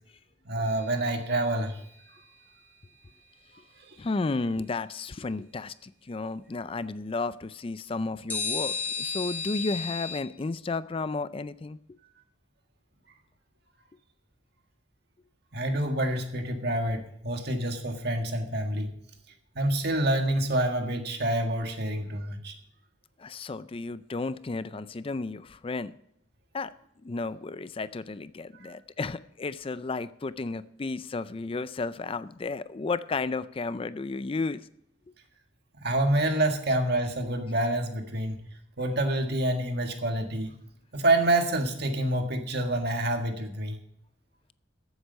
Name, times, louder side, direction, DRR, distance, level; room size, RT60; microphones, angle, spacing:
voice 1, 0.5-1.8 3.8-4.0 15.5-18.9 19.6-22.5 28.6-28.7 35.8-38.4 38.8-40.5 40.9-43.8, right 1 dB, 60° right, 4 dB, 1.7 m, -27 dB
sound 1, 0.6-1.9 8.3-10.2, left 6 dB, 10° left, 3.7 m, -34 dB
voice 2, 4.0-11.8 23.2-25.9 26.5-26.7 27.0-34.7, left 3 dB, 30° left, 15 dB, 0.4 m, -33 dB
14.0 x 8.1 x 5.5 m, 0.72 s
head